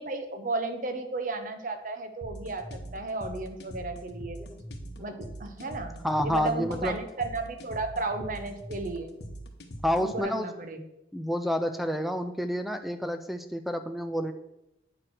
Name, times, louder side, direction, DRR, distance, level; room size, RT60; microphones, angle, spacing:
voice 1, 0.0-4.4 5.0-9.1 10.0-10.8, right 3 dB, 50° right, 7 dB, 0.9 m, -34 dB
sound 1, 2.2-10.2, right 1 dB, 70° left, 1.1 m, -42 dB
voice 2, 5.6-7.0 9.8-10.5 11.1-14.3, equal, ahead, 8 dB, 0.4 m, -29 dB
8.9 x 4.7 x 6.2 m, 0.90 s
head